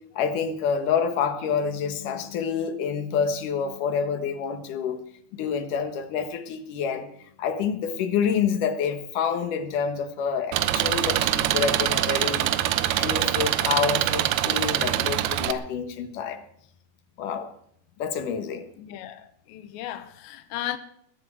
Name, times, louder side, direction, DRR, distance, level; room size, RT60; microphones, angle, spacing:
voice 1, 0.2-5.0 5.3-7.1 7.4-12.5 13.0-16.4 17.2-17.5 18.0-18.7, left 6 dB, 60° left, 2.5 m, -27 dB
Engine, 10.5-15.5, right 13 dB, 75° right, 2.5 m, -24 dB
voice 2, 18.8-20.8, left 13 dB, 90° left, 3.2 m, -35 dB
20.5 x 8.1 x 8.3 m
omnidirectional pair, 5.0 m